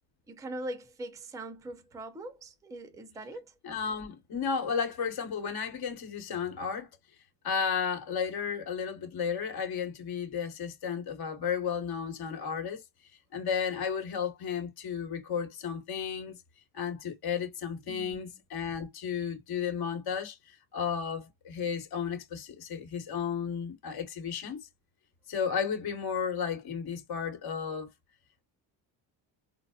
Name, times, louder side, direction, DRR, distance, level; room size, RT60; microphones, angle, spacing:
voice 1, 0.3-3.5 17.9-18.4, right 1 dB, 10° right, 0.4 m, -42 dB
voice 2, 3.6-6.9 7.4-12.8 13.3-16.3 16.7-24.7 25.3-27.9, left 7 dB, 55° left, 1.4 m, -33 dB
4.0 x 2.1 x 2.3 m
cardioid pair, 150°, 46 cm